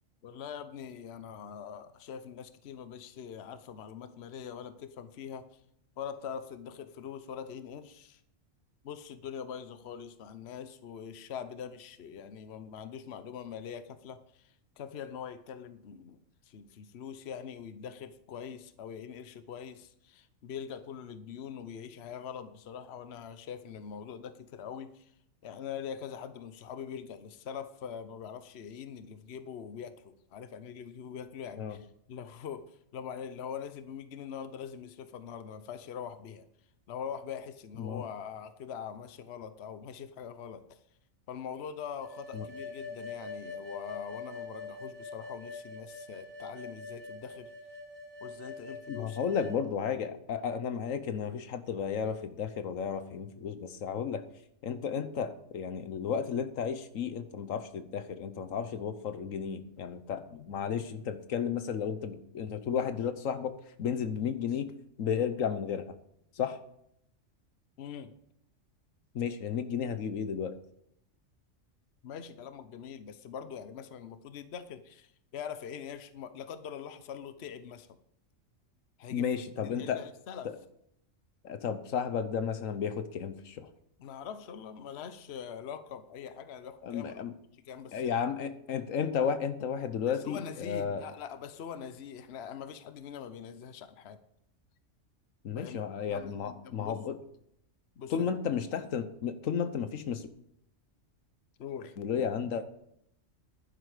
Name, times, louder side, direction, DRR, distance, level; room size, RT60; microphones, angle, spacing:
voice 1, 0.2-5.5 6.0-8.2 8.8-16.2 16.5-25.1 25.4-32.6 32.9-36.5 36.9-40.8 41.3-47.5 48.2-49.4 67.8-68.1 72.0-77.9 79.0-79.3 79.6-80.5 84.0-87.2 87.6-88.2 90.1-94.2 95.5-95.8 96.1-97.0 98.0-98.3 101.6-101.9, left 7 dB, 55° left, 12 dB, 1.0 m, -43 dB
sound 1, 42.0-49.6, left 3 dB, 90° right, 3.8 m, -44 dB
voice 2, 48.9-54.2 54.6-64.7 65.0-65.9 66.4-66.6 69.1-70.5 79.1-80.0 81.4-83.7 86.8-87.3 87.9-91.1 95.4-97.2 98.1-100.3 102.0-102.8, left 7 dB, 80° left, 11 dB, 1.3 m, -33 dB
11.5 x 9.9 x 4.9 m, 0.74 s
omnidirectional pair, 1.3 m